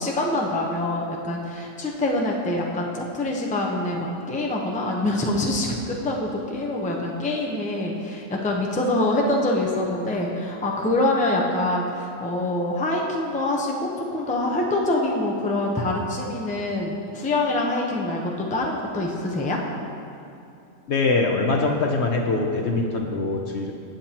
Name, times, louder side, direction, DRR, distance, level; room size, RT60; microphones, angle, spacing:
voice 1, 0.0-19.6, left 1 dB, 5° left, -1 dB, 0.7 m, -25 dB
voice 2, 20.9-23.7, left 3 dB, 55° left, 2 dB, 0.9 m, -23 dB
18.0 x 7.8 x 2.9 m, 2.7 s
omnidirectional pair, 1.5 m